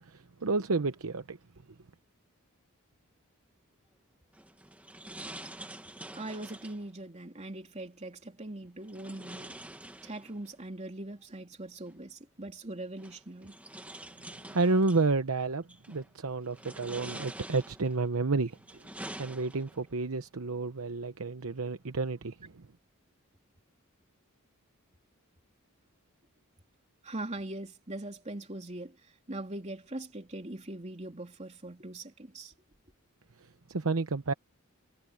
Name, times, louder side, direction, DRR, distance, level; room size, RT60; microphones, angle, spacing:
voice 1, 0.0-1.4 14.2-18.9 19.2-22.7 33.4-34.3, right 3 dB, 75° right, 0.9 m, -31 dB
sound 1, 4.3-6.9 8.9-10.5 11.9-12.0 13.0-15.1 15.7-16.1 16.5-18.0 18.5-19.9, right 1 dB, 5° right, 1.3 m, -46 dB
voice 2, 6.1-9.6 10.0-13.6 27.0-32.5, right 1 dB, 30° right, 3.0 m, -41 dB
head